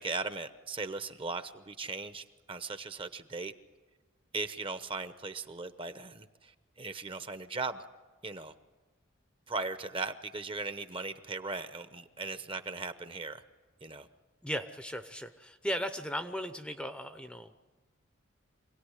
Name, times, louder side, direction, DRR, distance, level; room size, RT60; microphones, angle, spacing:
voice 1, 0.0-3.5 4.3-6.5 6.8-7.8 8.2-8.5 9.5-13.4 13.8-14.1, right 3 dB, 25° right, 0.9 m, -38 dB
voice 2, 14.4-17.5, equal, 5° left, 0.7 m, -36 dB
26.0 x 18.0 x 9.9 m
head